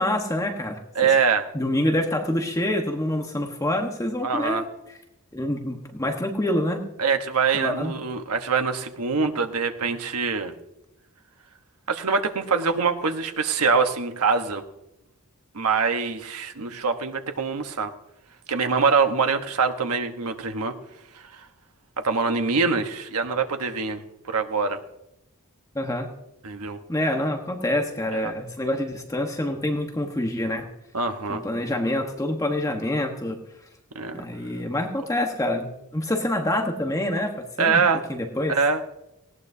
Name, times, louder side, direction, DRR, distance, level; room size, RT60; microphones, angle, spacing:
voice 1, 0.0-0.8 1.5-4.7 5.3-6.8 7.5-7.9 25.7-26.1 26.9-30.7 31.3-33.4 34.1-37.8 38.1-38.6, left 1 dB, 15° left, 3 dB, 1.3 m, -26 dB
voice 2, 0.9-1.5 4.2-4.6 7.0-10.5 11.9-14.6 15.5-17.9 18.5-20.8 21.3-21.4 22.0-24.8 26.4-26.8 28.1-28.3 30.9-31.4 33.9-34.2 37.6-38.0 38.5-38.8, right 5 dB, 85° right, 6 dB, 1.2 m, -24 dB
19.0 x 17.0 x 2.8 m, 0.87 s
head